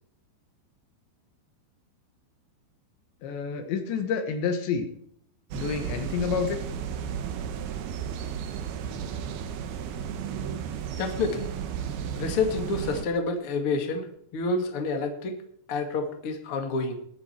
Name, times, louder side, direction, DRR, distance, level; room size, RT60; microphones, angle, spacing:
voice 1, 3.2-4.9 5.5-6.6, left 6 dB, 70° left, 6 dB, 3.5 m, -28 dB
sound 1, 5.5-13.1, right 8 dB, 70° right, 2.6 m, -34 dB
voice 2, 11.0-11.5 12.2-14.1 14.3-15.3 15.7-17.0, left 3 dB, 50° left, 4 dB, 1.8 m, -28 dB
21.0 x 8.0 x 4.6 m, 0.67 s
omnidirectional pair, 5.7 m